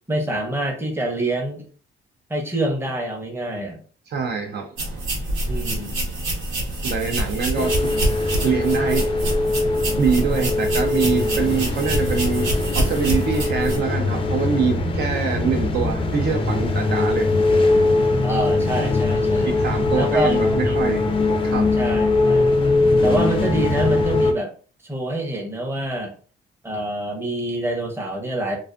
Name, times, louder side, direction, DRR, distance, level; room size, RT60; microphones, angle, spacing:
voice 1, 0.1-1.7 2.3-3.8 5.5-6.0 18.2-19.6 19.9-20.8 21.8-22.5 23.0-24.5 24.8-26.2 26.6-28.6, right 1 dB, 10° right, 0.7 m, -26 dB
voice 2, 4.1-4.8 6.8-9.1 10.0-17.3 19.4-21.1 21.4-21.8, right 5 dB, 60° right, 0.5 m, -24 dB
sound 1, 4.8-13.8, right 1 dB, 80° right, 0.9 m, -26 dB
sound 2, 7.6-24.3, left 2 dB, 25° left, 0.4 m, -21 dB
2.4 x 2.3 x 2.4 m
cardioid pair, 90°, 20 cm